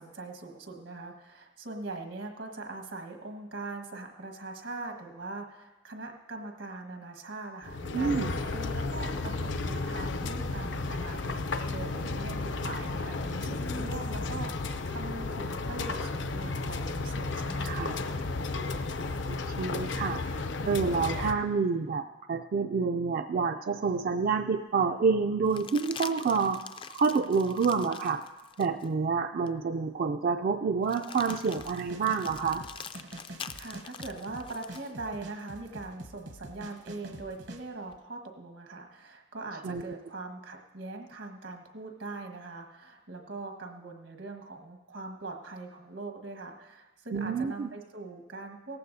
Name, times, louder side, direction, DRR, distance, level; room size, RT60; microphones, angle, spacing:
voice 1, 0.0-14.5 14.9-17.9 33.3-48.8, right 3 dB, 85° right, 3 dB, 1.5 m, -41 dB
sound 1, 7.6-21.3, left 3 dB, 65° left, 0.6 m, -33 dB
voice 2, 7.9-8.3 17.6-17.9 19.3-26.6 26.9-28.2 28.6-32.6 39.6-40.0 47.1-47.7, right 5 dB, 50° right, 6 dB, 0.3 m, -28 dB
sound 2, 23.9-24.0 25.4-28.9 29.5-29.6 30.8-34.9 37.1-38.0, left 7 dB, 25° left, 0.3 m, -45 dB
sound 3, 31.2-37.6, right 1 dB, 70° right, 1.0 m, -45 dB
18.0 x 14.5 x 2.7 m, 1.2 s
head